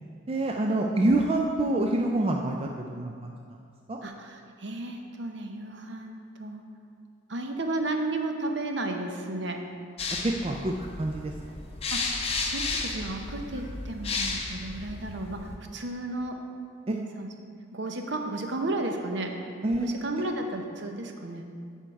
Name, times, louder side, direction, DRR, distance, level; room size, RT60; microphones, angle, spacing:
voice 1, 0.3-3.6 3.9-4.0 10.2-11.3 19.6-19.9, right 2 dB, 30° right, 1 dB, 0.3 m, -27 dB
voice 2, 4.0-6.6 7.3-9.6 11.9-16.4 16.9-17.3 17.7-19.3 19.8-21.5, right 2 dB, 60° right, 4 dB, 0.7 m, -33 dB
sound 1, 10.0-15.6, left 3 dB, 30° left, 0.6 m, -33 dB
10.0 x 4.6 x 4.6 m, 2.2 s
head